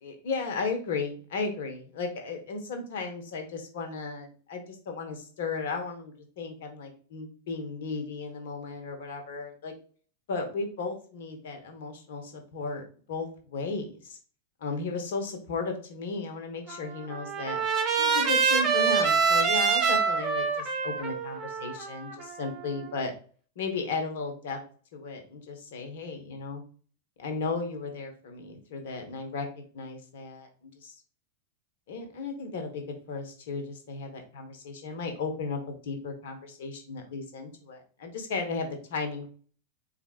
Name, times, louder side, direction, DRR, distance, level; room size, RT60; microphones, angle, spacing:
voice 1, 0.0-9.7 10.3-14.2 14.6-17.6 18.0-23.1 23.6-24.6 24.9-26.6 27.2-30.9 31.9-39.3, left 4 dB, 55° left, 5 dB, 1.1 m, -35 dB
Trumpet, 16.7-22.8, right 5 dB, 30° right, 0.9 m, -26 dB
4.5 x 3.3 x 2.9 m, 0.41 s
figure-of-eight pair, 90°, 0 cm